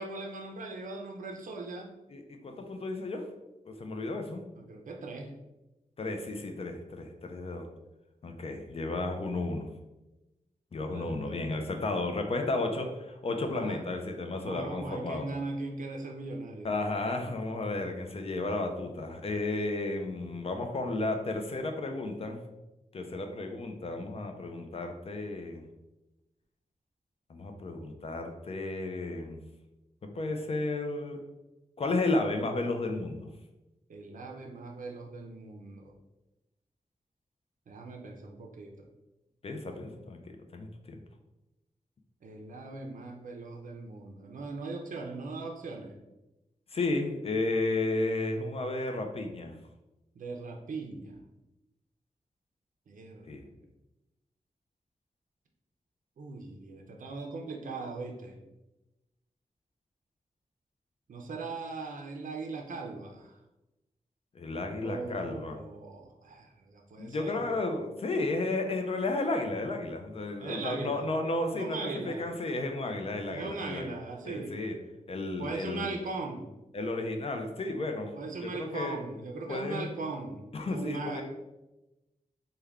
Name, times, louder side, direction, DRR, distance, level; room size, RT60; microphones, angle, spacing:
voice 1, 0.0-2.0 4.6-5.3 10.9-12.0 13.3-13.8 14.3-16.7 33.9-36.0 37.7-38.8 42.2-45.9 50.2-51.2 52.9-53.4 56.2-58.4 61.1-63.4 64.8-67.4 70.4-71.1 71.5-72.2 73.3-74.6 75.4-76.5 78.1-81.2, right 3 dB, 75° right, 2 dB, 0.4 m, -39 dB
voice 2, 2.1-3.2 3.7-4.4 6.0-7.7 8.2-9.7 10.7-15.3 16.6-22.4 22.9-25.6 27.3-29.4 30.0-31.2 31.8-33.3 39.4-41.0 46.7-49.5 53.3-53.4 64.3-65.6 67.0-74.0 74.2-74.8 75.1-75.9 76.7-78.1 78.4-79.0 79.5-79.9 80.5-81.2, left 2 dB, 45° left, 5 dB, 0.5 m, -33 dB
3.4 x 2.2 x 3.4 m, 0.99 s
wide cardioid pair, 125°, 14 cm